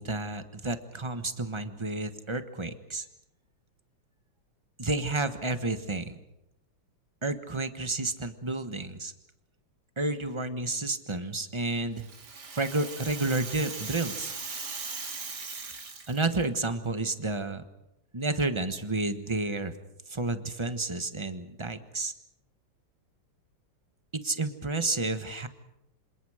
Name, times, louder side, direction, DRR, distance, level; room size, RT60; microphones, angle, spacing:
voice 1, 0.0-3.0 4.8-6.2 7.2-9.1 10.0-12.1 12.5-14.3 16.1-17.6 18.1-19.7 20.1-22.1 24.1-25.5, right 2 dB, 20° right, 9 dB, 0.8 m, -31 dB
Rattle (instrument), 11.7-16.4, right 4 dB, 50° right, 3.0 m, -39 dB
27.5 x 27.0 x 5.0 m, 0.86 s
omnidirectional pair, 2.4 m